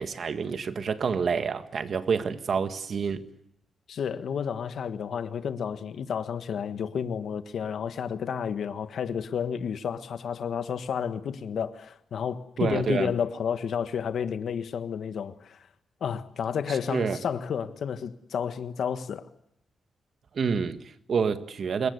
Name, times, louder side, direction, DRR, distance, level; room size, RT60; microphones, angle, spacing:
voice 1, 0.0-3.2 12.6-13.1 16.7-17.2 20.3-21.9, right 6 dB, 55° right, 1.7 m, -28 dB
voice 2, 3.9-15.6 16.0-19.3, left 7 dB, 75° left, 1.5 m, -31 dB
27.0 x 22.0 x 8.1 m
wide cardioid pair, 120°, 0 cm